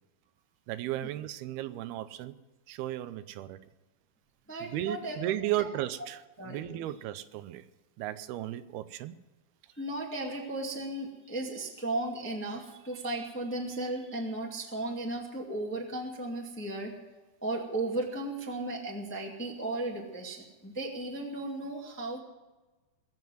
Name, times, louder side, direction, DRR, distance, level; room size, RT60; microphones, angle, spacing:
voice 1, 0.7-2.4 2.7-3.6 4.6-7.7 8.0-9.2, right 13 dB, 90° right, 2.7 m, -35 dB
voice 2, 4.5-5.2 5.6-5.7 6.4-6.8 9.7-16.9 17.4-22.2, right 2 dB, 5° left, 1.1 m, -35 dB
21.5 x 7.6 x 7.8 m
omnidirectional pair, 4.3 m